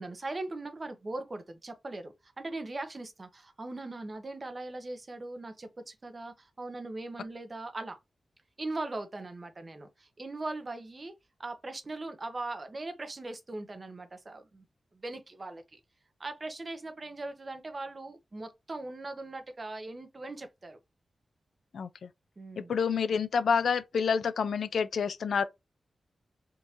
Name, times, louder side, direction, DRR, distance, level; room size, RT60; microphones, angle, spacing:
voice 1, 0.0-8.0 8.6-11.1 11.4-14.6 14.9-15.8 16.2-20.8 22.4-22.7, right 2 dB, 35° right, 0.8 m, -40 dB
voice 2, 22.6-25.4, left 6 dB, 85° left, 0.4 m, -28 dB
3.7 x 2.6 x 2.8 m
wide cardioid pair, 90°, 0 cm